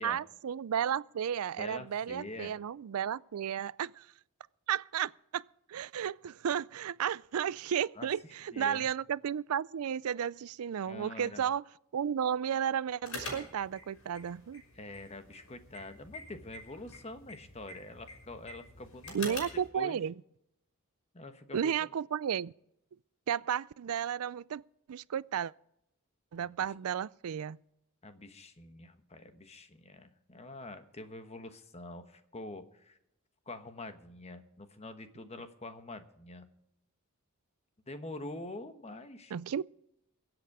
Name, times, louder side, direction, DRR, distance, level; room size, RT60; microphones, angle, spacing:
voice 1, 0.0-4.1 4.7-5.4 5.7-11.6 11.9-14.6 19.1-20.1 21.5-22.5 23.3-24.6 24.9-25.5 26.3-27.6 39.3-39.6, right 8 dB, 85° right, 0.4 m, -33 dB
voice 2, 1.6-2.5 8.0-8.1 8.5-8.9 10.9-11.4 14.7-19.4 19.7-20.0 21.1-21.7 26.4-26.5 28.0-33.0 33.5-36.5 37.9-39.3, left 2 dB, 30° left, 1.2 m, -45 dB
sound 1, 13.0-19.7, left 2 dB, 70° left, 5.7 m, -46 dB
23.0 x 8.1 x 4.9 m
head